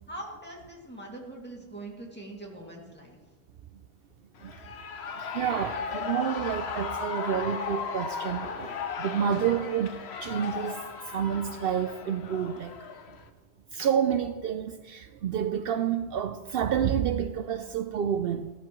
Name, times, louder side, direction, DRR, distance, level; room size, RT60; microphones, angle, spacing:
voice 1, 0.1-3.2, right 1 dB, 10° left, 2.3 m, -42 dB
Shout / Cheering, 4.4-13.3, left 6 dB, 85° left, 1.1 m, -36 dB
voice 2, 4.4-4.7 5.1-12.9 13.7-18.5, right 8 dB, 70° right, 0.7 m, -29 dB
15.0 x 13.5 x 3.1 m
omnidirectional pair, 1.1 m